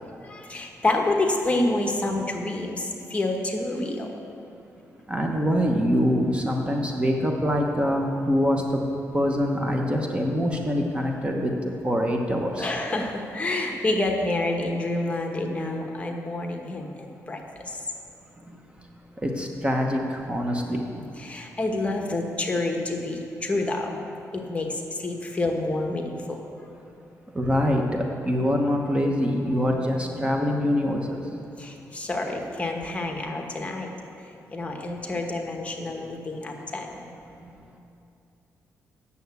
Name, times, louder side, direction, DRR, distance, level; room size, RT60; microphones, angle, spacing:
voice 1, 0.2-4.1 12.6-17.8 21.2-24.0 24.3-26.4 31.6-33.9 34.2-37.0, left 2 dB, 20° left, 2 dB, 1.2 m, -28 dB
voice 2, 5.1-8.9 9.1-12.7 19.2-21.0 27.3-31.2, equal, 20° right, 1 dB, 1.0 m, -24 dB
9.0 x 7.0 x 8.1 m, 2.6 s
cardioid pair, 115°, 6 cm